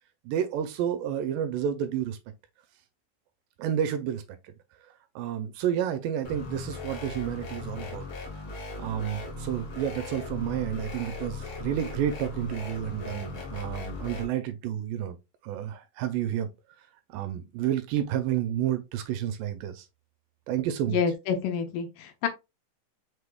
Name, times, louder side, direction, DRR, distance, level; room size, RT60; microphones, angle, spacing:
voice 1, 0.3-2.2 3.6-4.5 5.2-8.1 8.8-15.2 15.4-16.5 17.1-19.9 20.5-21.0, right 10 dB, 80° right, 2.1 m, -30 dB
sound 1, 6.2-14.3, left 3 dB, 55° left, 1.5 m, -38 dB
voice 2, 20.9-22.3, left 7 dB, 75° left, 2.3 m, -28 dB
6.0 x 3.4 x 2.2 m
omnidirectional pair, 4.2 m